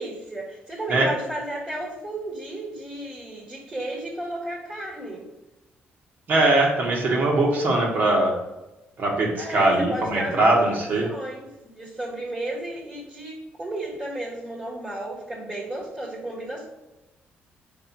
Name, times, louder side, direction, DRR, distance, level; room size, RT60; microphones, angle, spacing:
voice 1, 0.0-5.3 9.4-11.5 11.7-16.7, right 1 dB, 20° right, -4 dB, 1.5 m, -33 dB
voice 2, 6.3-8.3 9.0-11.0, right 2 dB, 50° right, -1 dB, 1.4 m, -21 dB
4.7 x 4.4 x 4.6 m, 1.0 s
cardioid pair, 125°, 4 cm